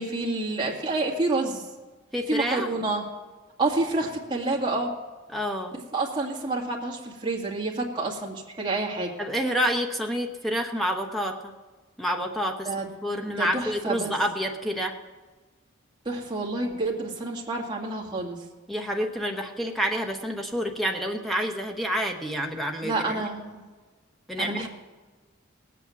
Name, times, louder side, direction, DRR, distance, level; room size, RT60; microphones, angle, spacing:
voice 1, 0.0-1.7 2.3-3.0 3.6-4.9 5.9-9.1 12.7-12.9 13.3-14.1 16.1-18.4 22.8-23.6 24.4-24.7, right 2 dB, 25° right, -1 dB, 2.0 m, -28 dB
voice 2, 2.1-2.7 5.3-5.8 9.2-11.5 12.0-12.7 13.0-15.0 18.7-23.2 24.3-24.7, equal, ahead, 3 dB, 1.0 m, -28 dB
18.0 x 8.5 x 7.1 m, 1.3 s
head